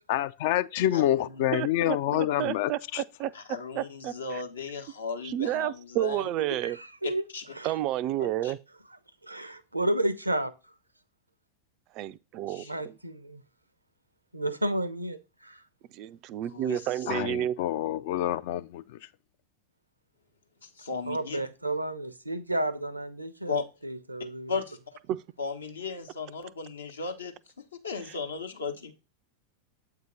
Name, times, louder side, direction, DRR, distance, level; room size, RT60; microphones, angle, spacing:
voice 1, 0.1-3.0 17.1-18.8, left 13 dB, 50° left, 0.4 m, -27 dB
voice 2, 0.9-1.5 3.3-6.2 7.3-7.4 8.2-8.5 12.5-12.7 16.5-16.9 20.6-21.4 23.5-23.6 24.5-24.8 25.4-28.9, left 4 dB, 70° left, 0.9 m, -36 dB
voice 3, 1.5-3.3 3.8-4.4 5.2-6.8 7.6-8.6 11.9-12.9 15.9-17.6 25.1-25.2 28.1-28.2, right 13 dB, 40° right, 0.3 m, -31 dB
voice 4, 6.6-7.2 7.5-7.7 9.2-10.5 12.6-13.4 14.3-15.6 21.1-23.6 23.8-24.6, right 1 dB, 85° right, 0.6 m, -31 dB
7.8 x 2.8 x 5.2 m
figure-of-eight pair, 90°, 0 cm